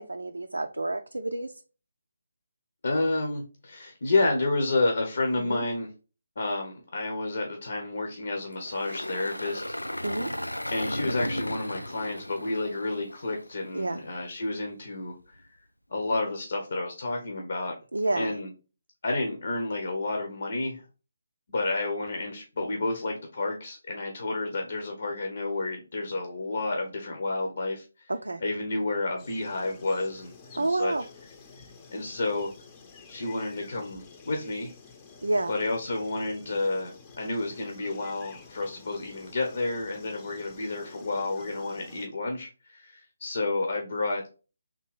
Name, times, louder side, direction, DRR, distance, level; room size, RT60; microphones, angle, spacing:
voice 1, 0.0-1.5 5.5-5.6 10.0-10.3 13.7-14.0 17.9-18.4 28.1-28.4 30.5-31.0 35.2-35.5, right 2 dB, 75° right, 6 dB, 0.4 m, -29 dB
voice 2, 2.8-5.9 6.4-9.6 10.7-15.5 15.9-17.7 18.2-18.5 19.0-20.8 21.5-28.1 28.4-30.9 31.9-32.5 33.1-34.7 35.5-44.3, left 2 dB, 55° left, 2 dB, 0.9 m, -30 dB
Engine, 8.5-13.8, left 1 dB, 85° left, 0.3 m, -35 dB
sound 1, 29.2-42.1, left 4 dB, 20° left, 0.7 m, -50 dB
3.7 x 2.8 x 4.7 m, 0.35 s
figure-of-eight pair, 150°, 0 cm